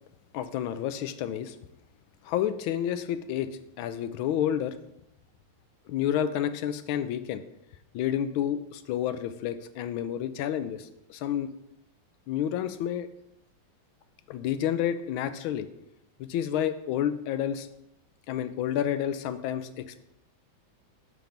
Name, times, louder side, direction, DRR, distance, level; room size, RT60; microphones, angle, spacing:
voice 1, 0.3-1.6 2.2-3.5 3.8-4.7 5.9-7.4 7.9-11.5 12.3-13.1 14.3-15.7 16.2-17.7 18.3-20.0, left 10 dB, 85° left, 11 dB, 1.4 m, -30 dB
7.0 x 4.6 x 5.1 m, 0.82 s
omnidirectional pair, 2.2 m